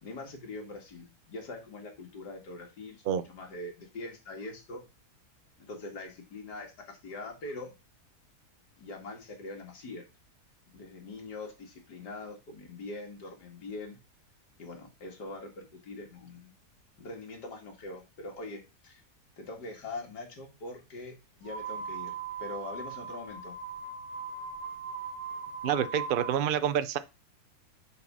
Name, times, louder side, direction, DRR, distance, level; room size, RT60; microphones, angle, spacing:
voice 1, 0.0-4.8 5.6-7.7 8.8-10.1 10.7-14.0 14.6-16.5 17.0-19.0 19.4-23.6, left 2 dB, 85° left, 2.5 m, -43 dB
sound 1, 21.4-26.4, right 5 dB, 35° right, 1.2 m, -39 dB
voice 2, 25.6-27.0, right 9 dB, 80° right, 0.4 m, -27 dB
7.0 x 4.4 x 6.0 m
omnidirectional pair, 1.7 m